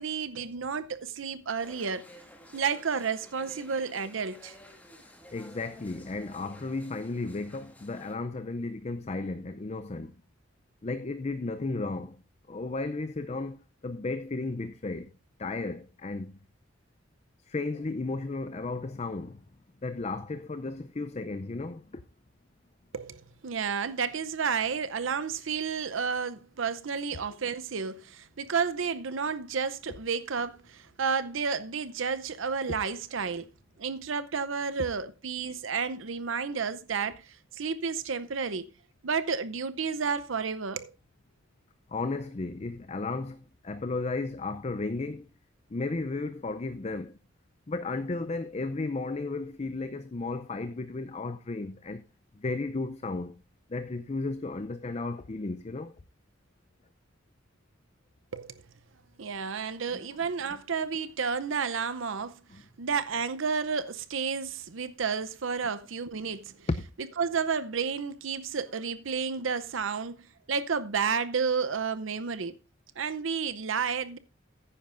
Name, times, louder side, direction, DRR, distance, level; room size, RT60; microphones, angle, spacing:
voice 1, 0.0-2.0 2.5-4.5 22.9-33.5 33.8-38.7 39.0-40.9 58.3-58.5 59.2-62.4 62.8-66.7 67.2-70.2 70.5-72.6 73.0-74.2, right 5 dB, 75° right, 0.7 m, -31 dB
sound 1, 1.6-8.2, equal, 10° left, 1.6 m, -52 dB
voice 2, 5.3-10.1 10.8-12.2 12.5-13.6 13.8-15.1 15.4-16.3 17.5-19.4 19.8-22.0 41.9-45.3 45.7-47.1 47.7-52.0 52.4-53.3 53.7-55.9 59.9-60.0 66.7-66.8, left 3 dB, 35° left, 0.5 m, -34 dB
14.5 x 9.9 x 2.5 m
head